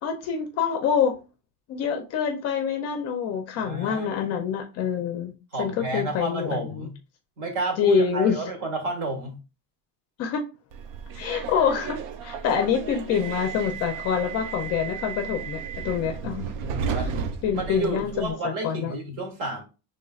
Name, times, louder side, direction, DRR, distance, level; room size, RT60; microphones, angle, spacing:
voice 1, 0.0-1.2 1.7-5.3 5.6-6.9 7.8-8.4 10.2-10.4 11.1-16.5 16.9-17.0 17.4-18.9, left 7 dB, 40° left, 0.5 m, -26 dB
voice 2, 3.6-4.3 5.5-6.9 7.4-9.4 16.6-17.2 17.5-19.6, right 2 dB, 50° right, 1.7 m, -31 dB
Subway metro underground, 10.7-18.3, right 6 dB, 80° right, 0.7 m, -34 dB
5.3 x 3.2 x 2.3 m
cardioid pair, 175°, 42 cm